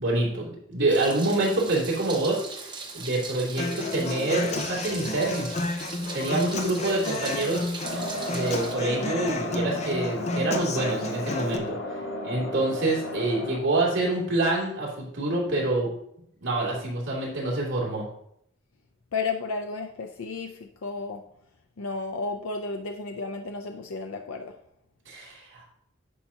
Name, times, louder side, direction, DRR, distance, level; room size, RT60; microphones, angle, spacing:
voice 1, 0.0-5.6 6.1-7.7 8.3-11.8 12.2-15.9 16.4-18.0 25.1-25.6, right 2 dB, 65° right, -5 dB, 2.6 m, -26 dB
Meow, 0.9-8.7, right 4 dB, 20° right, 0.9 m, -40 dB
Human voice / Acoustic guitar, 3.6-11.6, left 2 dB, 30° left, 0.6 m, -32 dB
sound 1, 7.8-13.6, left 1 dB, 65° left, 1.2 m, -34 dB
voice 2, 19.1-21.2 21.8-24.6, left 4 dB, 90° left, 5 dB, 0.5 m, -33 dB
10.0 x 5.5 x 2.8 m, 0.72 s
head